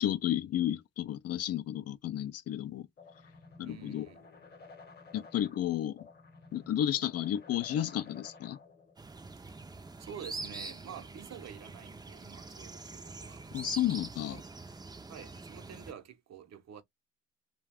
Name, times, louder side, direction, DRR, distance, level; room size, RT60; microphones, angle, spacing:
voice 1, 0.0-2.9 3.6-4.1 5.1-6.1 6.5-8.6 13.5-14.4, left 11 dB, 55° left, 0.4 m, -32 dB
sound 1, 3.0-9.0, left 4 dB, 35° left, 0.9 m, -54 dB
voice 2, 3.6-4.2 9.7-13.4 14.2-14.5 15.1-16.8, right 8 dB, 60° right, 0.8 m, -48 dB
sound 2, 9.0-15.9, right 3 dB, 15° right, 0.5 m, -44 dB
2.4 x 2.3 x 3.3 m
cardioid pair, 90°, 30 cm